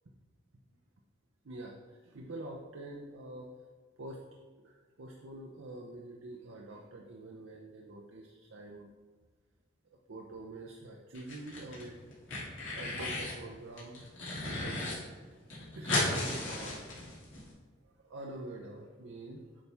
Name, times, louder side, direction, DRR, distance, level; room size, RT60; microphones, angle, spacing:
voice 1, 2.0-3.5 4.0-4.2 4.6-8.9 10.1-12.0 12.8-14.0 14.4-14.8 15.7-16.8 18.0-19.4, right 2 dB, 80° right, 0 dB, 0.7 m, -45 dB
sound 1, 11.1-11.8 12.1-13.4 13.8-14.9 15.2-15.3 15.5-17.4, left 2 dB, 75° left, 2.4 m, -35 dB
8.8 x 5.5 x 3.4 m, 1.4 s
head